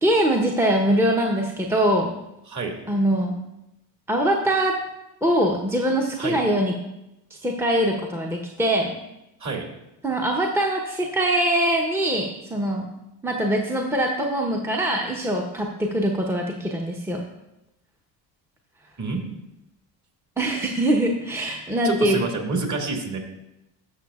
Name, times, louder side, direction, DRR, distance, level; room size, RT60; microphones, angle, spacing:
voice 1, 0.0-2.1 2.9-3.4 4.1-4.8 5.2-6.7 7.4-8.9 10.0-12.9 13.2-17.2 20.4-22.2, right 1 dB, 5° right, 0 dB, 0.9 m, -23 dB
voice 2, 21.8-23.2, right 3 dB, 35° right, 1 dB, 2.2 m, -27 dB
12.5 x 6.1 x 2.4 m, 0.89 s
hypercardioid pair, 70°, 48 cm